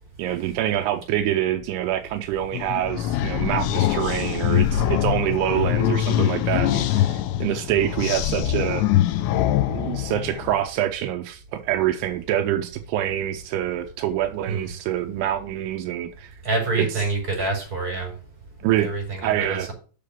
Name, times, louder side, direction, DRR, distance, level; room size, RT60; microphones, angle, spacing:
voice 1, 0.2-8.8 9.7-16.3 18.6-18.9 19.2-19.7, right 12 dB, 85° right, 2.3 m, -26 dB
sound 1, 2.5-10.6, left 12 dB, 80° left, 2.7 m, -23 dB
voice 2, 16.4-18.1 18.6-19.7, right 3 dB, 20° right, 5.0 m, -27 dB
7.5 x 6.7 x 5.3 m
omnidirectional pair, 5.5 m